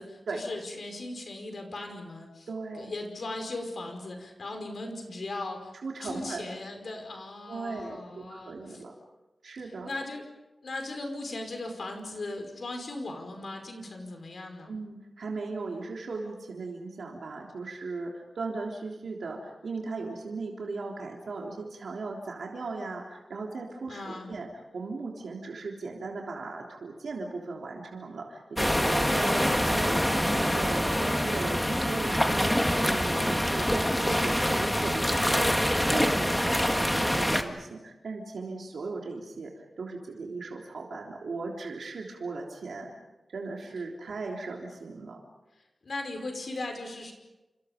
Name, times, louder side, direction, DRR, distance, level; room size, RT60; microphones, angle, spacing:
voice 1, 0.0-2.5 2.7-5.7 6.0-8.8 9.6-10.2 10.6-14.7 23.9-24.3 45.8-47.1, left 2 dB, 60° left, 4 dB, 5.2 m, -38 dB
voice 2, 2.5-2.9 5.8-6.5 7.5-9.0 9.4-9.9 14.7-24.5 24.7-42.9 43.3-45.2, right 3 dB, 85° right, -1 dB, 3.5 m, -37 dB
sound 1, 28.6-37.4, equal, 5° left, 1.8 m, -25 dB
29.5 x 28.0 x 5.3 m, 1.1 s
wide cardioid pair, 125°, 0 cm